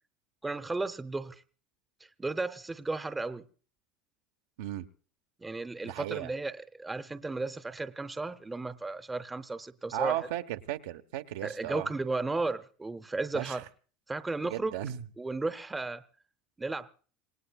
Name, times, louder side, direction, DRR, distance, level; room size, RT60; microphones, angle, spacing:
voice 1, 0.4-1.4 2.2-3.5 5.4-10.3 11.4-13.6 14.1-14.8 15.2-16.0 16.6-16.9, right 3 dB, 10° right, 0.7 m, -34 dB
voice 2, 5.8-6.3 9.9-11.9 13.3-13.6 14.4-15.0, right 12 dB, 80° right, 1.0 m, -35 dB
27.0 x 18.0 x 2.4 m
supercardioid pair, 115°, 0 cm